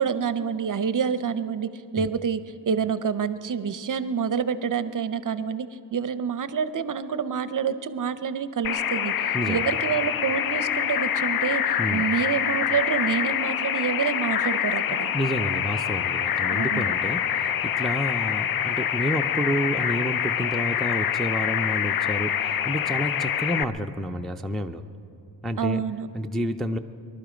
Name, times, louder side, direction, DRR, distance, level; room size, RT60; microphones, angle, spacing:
voice 1, 0.0-15.2 16.5-16.9 25.6-26.1, right 7 dB, 45° right, 13 dB, 0.6 m, -27 dB
sound 1, 8.6-23.6, left 9 dB, 55° left, 0.5 m, -26 dB
voice 2, 9.3-9.8 11.8-12.0 15.1-24.8 25.4-25.8 26.1-26.8, equal, ahead, 4 dB, 0.4 m, -29 dB
22.5 x 12.5 x 5.1 m, 2.7 s
wide cardioid pair, 115°, 43 cm